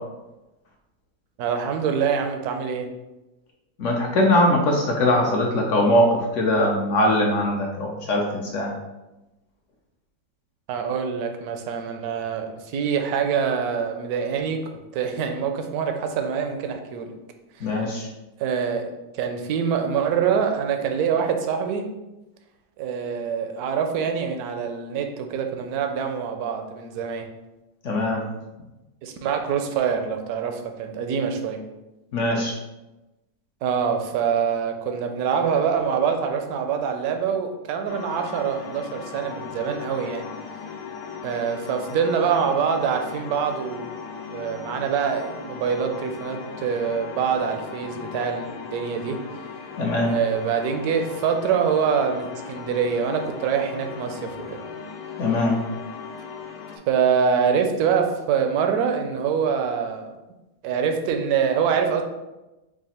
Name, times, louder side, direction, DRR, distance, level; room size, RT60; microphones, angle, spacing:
voice 1, 1.4-2.9 10.7-14.6 14.9-17.1 18.4-21.8 22.8-27.3 29.0-31.6 33.6-40.3 41.2-43.9 44.3-49.2 50.0-54.6 56.9-60.1 60.6-62.0, right 7 dB, 70° right, 5 dB, 1.0 m, -25 dB
voice 2, 3.8-8.7 17.6-18.1 27.8-28.2 32.1-32.6 49.8-50.1 55.2-55.6, left 1 dB, 65° left, 0 dB, 0.7 m, -21 dB
sound 1, 37.9-56.8, left 6 dB, 85° left, 1.3 m, -38 dB
4.8 x 2.4 x 4.2 m, 1.0 s
omnidirectional pair, 1.9 m